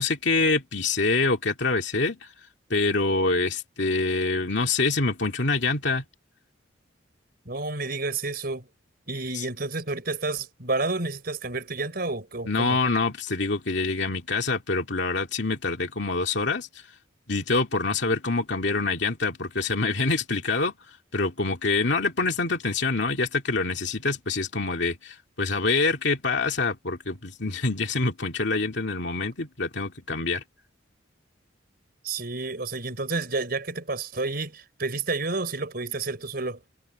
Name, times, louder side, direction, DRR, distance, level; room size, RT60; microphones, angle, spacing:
voice 1, 0.0-2.3 2.7-6.0 9.3-9.4 12.5-16.9 17.3-20.7 21.1-30.4, left 3 dB, 60° left, 2.5 m, -26 dB
voice 2, 7.4-8.7 9.1-12.8 32.0-36.6, right 3 dB, 50° right, 4.8 m, -30 dB
head